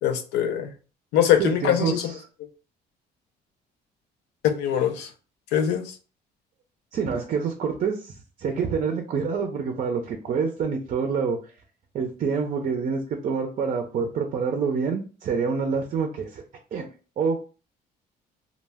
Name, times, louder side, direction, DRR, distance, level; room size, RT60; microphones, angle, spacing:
voice 1, 0.0-0.7 1.1-2.1 4.4-5.1 5.5-5.9, left 9 dB, 90° left, 7 dB, 0.5 m, -22 dB
voice 2, 1.4-2.2 6.9-11.4 11.9-16.4 16.7-16.9 17.2-17.4, right 5 dB, 45° right, 4 dB, 0.5 m, -27 dB
2.1 x 2.1 x 3.3 m, 0.35 s
cardioid pair, 110°, 17 cm